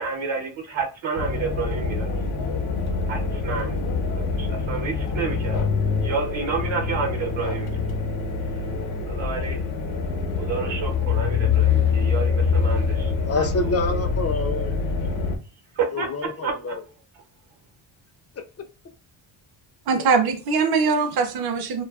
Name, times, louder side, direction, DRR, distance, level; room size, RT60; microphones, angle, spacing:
voice 1, 0.0-2.1 3.1-3.8 4.4-5.6 6.0-7.8 9.1-9.6 10.4-13.5 15.8-16.1 16.4-16.8, right 5 dB, 70° right, 0.8 m, -29 dB
sound 1, 1.1-15.4, left 5 dB, 70° left, 0.7 m, -25 dB
voice 2, 13.3-14.7 15.9-16.8 21.0-21.2, left 3 dB, 35° left, 0.4 m, -27 dB
voice 3, 19.9-21.8, right 5 dB, 50° right, 0.5 m, -22 dB
2.6 x 2.3 x 2.3 m
cardioid pair, 105°, 48 cm